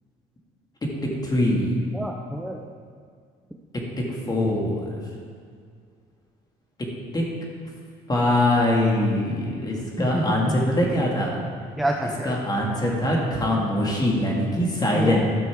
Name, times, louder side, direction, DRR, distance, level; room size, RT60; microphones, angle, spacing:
voice 1, 1.0-1.8 4.0-4.9 7.1-7.2 8.1-11.4 12.2-15.2, left 1 dB, 25° left, -2 dB, 2.2 m, -23 dB
voice 2, 1.9-2.6 10.0-10.5 11.8-12.3 14.9-15.2, right 1 dB, ahead, 1 dB, 0.6 m, -27 dB
13.0 x 6.1 x 4.8 m, 2.1 s
cardioid pair, 110°, 17 cm